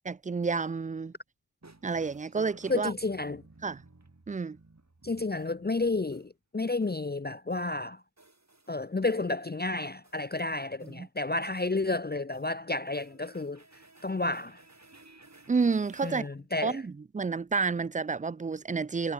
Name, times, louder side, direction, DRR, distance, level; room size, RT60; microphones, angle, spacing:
voice 1, 0.1-1.1 1.8-2.9 3.6-3.8 4.3-4.6 11.0-11.1 15.5-16.3 16.6-19.1, right 4 dB, 20° right, 0.3 m, -30 dB
sound 1, 1.6-6.3 6.8-7.1 7.5-7.7 8.2-9.1 9.5-11.0 11.6-11.7 12.2-12.5 12.9-16.2, right 2 dB, 40° right, 6.1 m, -56 dB
voice 2, 2.7-3.4 5.0-8.0 8.7-13.6 14.0-14.6 16.0-16.8, left 2 dB, 25° left, 0.6 m, -31 dB
wide cardioid pair, 70°, 42 cm